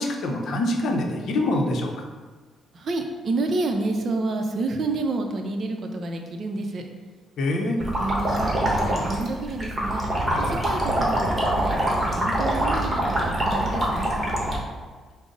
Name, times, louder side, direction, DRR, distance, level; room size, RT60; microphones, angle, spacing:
voice 1, 0.0-1.9 7.4-7.8, left 1 dB, 65° left, 2 dB, 0.6 m, -25 dB
voice 2, 2.7-6.8 8.0-10.0 10.4-14.2, right 2 dB, 50° right, 4 dB, 0.5 m, -29 dB
sound 1, 7.8-14.6, right 1 dB, 35° right, 1.0 m, -24 dB
5.1 x 2.0 x 3.8 m, 1.4 s
cardioid pair, 90°, 0 cm